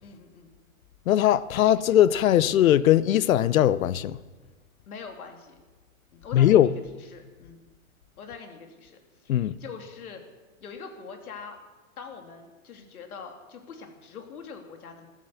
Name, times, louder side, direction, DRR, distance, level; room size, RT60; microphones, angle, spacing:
voice 1, 0.0-0.5 4.9-5.6 6.1-6.7 7.0-7.6 8.2-10.2 10.6-11.6 12.0-15.1, left 5 dB, 85° left, 3.0 m, -43 dB
voice 2, 1.1-4.2 6.3-6.7 9.3-9.5, left 11 dB, 70° left, 0.8 m, -20 dB
14.0 x 13.0 x 7.2 m
hypercardioid pair, 165°, 42 cm